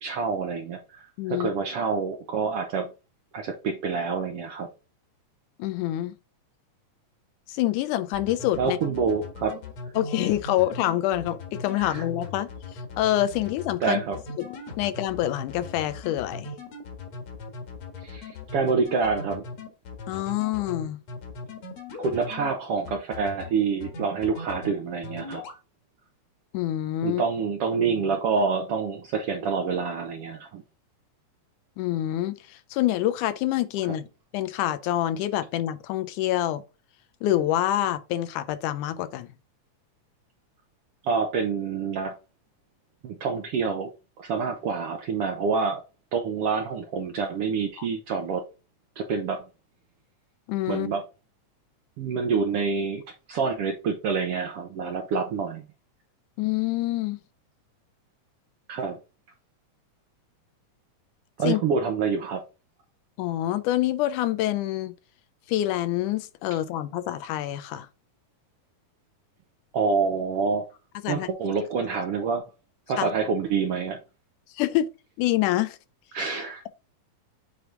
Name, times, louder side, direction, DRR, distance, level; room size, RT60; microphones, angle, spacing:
voice 1, 0.0-2.9 3.3-4.7 8.6-9.5 11.8-12.0 13.8-14.2 18.0-19.4 22.0-25.4 27.0-30.6 41.0-42.1 43.0-43.9 44.2-45.8 46.1-48.4 49.0-49.4 50.7-51.0 52.0-53.0 53.3-55.6 58.7-59.0 61.4-62.4 69.7-70.6 71.1-72.4 72.9-74.0 76.1-76.6, right 5 dB, 75° right, 1.3 m, -27 dB
voice 2, 1.2-1.5 5.6-6.1 7.5-8.8 10.0-14.0 14.4-14.5 14.8-16.5 20.1-21.0 26.5-27.2 31.8-34.1 34.3-36.6 37.2-39.3 47.8-47.9 50.5-50.9 56.4-57.2 61.4-61.6 63.2-64.9 65.5-67.9 71.0-71.3 73.0-73.1 74.5-74.9 75.2-75.8, left 14 dB, 90° left, 2.2 m, -26 dB
sound 1, 8.1-22.5 22.8-23.5 23.8-24.7 25.0-25.6, left 3 dB, 60° left, 2.7 m, -38 dB
7.9 x 3.4 x 3.8 m
omnidirectional pair, 3.5 m